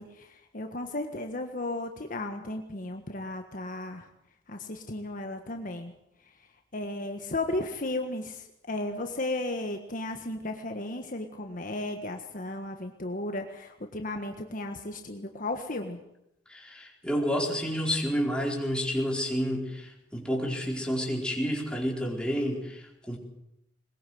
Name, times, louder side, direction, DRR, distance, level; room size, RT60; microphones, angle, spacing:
voice 1, 0.0-4.1 4.5-5.9 6.2-16.0, left 2 dB, 45° left, 5 dB, 1.5 m, -35 dB
voice 2, 16.5-23.2, equal, 5° left, -1 dB, 4.5 m, -30 dB
21.5 x 21.0 x 7.8 m, 0.84 s
head